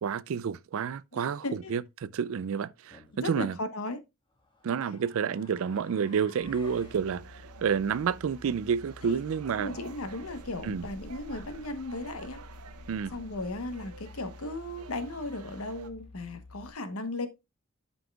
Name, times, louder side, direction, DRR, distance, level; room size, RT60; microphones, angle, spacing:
voice 1, 0.0-3.6 4.6-9.8 10.6-10.9 12.9-13.1, right 7 dB, 65° right, 0.3 m, -30 dB
voice 2, 1.1-1.7 3.2-4.0 9.0-9.2 9.5-12.4 13.1-17.3, left 2 dB, 70° left, 1.0 m, -36 dB
sound 1, 2.9-3.3 4.3-7.0, left 2 dB, 20° left, 1.4 m, -55 dB
sound 2, 6.4-16.7, left 2 dB, 90° left, 1.3 m, -49 dB
sound 3, 6.6-15.9, right 5 dB, 90° right, 0.8 m, -50 dB
11.5 x 5.3 x 2.3 m
head